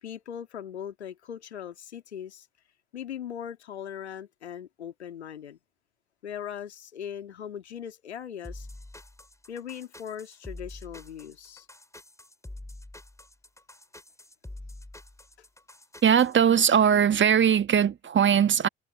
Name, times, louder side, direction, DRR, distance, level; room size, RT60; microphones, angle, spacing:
voice 1, 0.0-2.5 2.9-5.6 6.2-8.7 9.5-11.7 15.4-15.5, left 9 dB, 85° left, 2.0 m, -39 dB
sound 1, 8.4-16.3, left 1 dB, 10° left, 6.6 m, -46 dB
voice 2, 16.0-18.7, right 8 dB, 35° right, 1.5 m, -20 dB
figure-of-eight pair, 50°, 32 cm